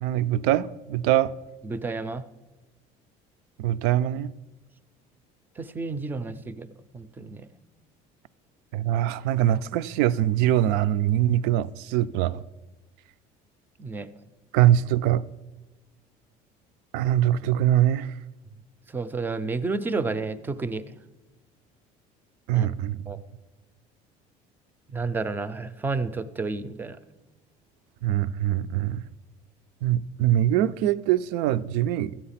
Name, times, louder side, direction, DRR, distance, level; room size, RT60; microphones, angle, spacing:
voice 1, 0.0-1.3 3.6-4.3 8.7-12.4 14.5-15.2 16.9-18.2 22.5-23.0 28.0-29.0 29.8-32.2, right 12 dB, 85° right, 0.4 m, -23 dB
voice 2, 1.6-2.2 5.6-6.7 6.9-7.5 13.8-14.1 18.9-20.8 22.5-22.7 23.1-23.2 24.9-27.0, right 3 dB, 10° right, 0.4 m, -30 dB
12.5 x 8.7 x 5.7 m
cardioid pair, 170°, 16 cm